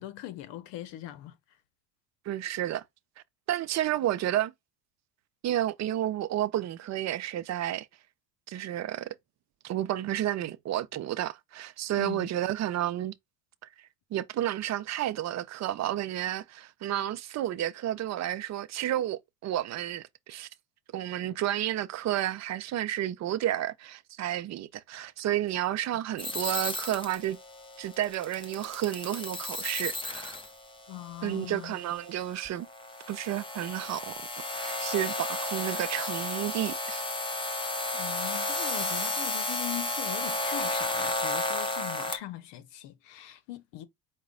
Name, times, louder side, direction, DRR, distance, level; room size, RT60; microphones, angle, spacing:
voice 1, 0.0-1.4 12.0-12.3 30.9-31.8 37.9-43.9, left 14 dB, 65° left, 0.8 m, -40 dB
voice 2, 2.3-2.8 3.5-4.5 5.4-7.9 8.5-9.1 9.6-13.1 14.1-20.5 20.9-27.4 27.8-30.4 31.2-32.7 33.1-34.2 34.5-37.1, right 12 dB, 40° right, 0.5 m, -31 dB
sound 1, 26.2-42.2, left 2 dB, 10° left, 0.7 m, -33 dB
4.8 x 2.2 x 3.7 m
supercardioid pair, 105°, 45 cm